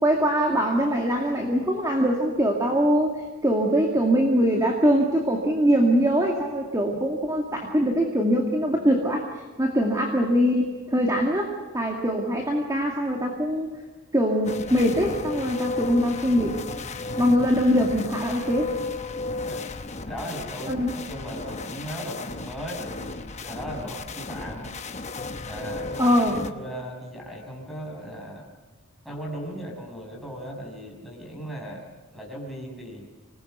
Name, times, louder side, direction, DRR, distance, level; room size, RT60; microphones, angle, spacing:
voice 1, 0.0-9.3 9.6-13.8 14.1-16.6 17.2-18.7 20.7-20.9 26.0-26.4, equal, 15° right, 0 dB, 2.2 m, -22 dB
sound 1, 14.4-26.5, left 3 dB, 30° left, 0.9 m, -34 dB
voice 2, 20.0-24.8 25.4-28.5 29.0-31.9 32.1-33.1, equal, ahead, -2 dB, 6.1 m, -37 dB
26.5 x 20.0 x 6.8 m, 1.3 s
head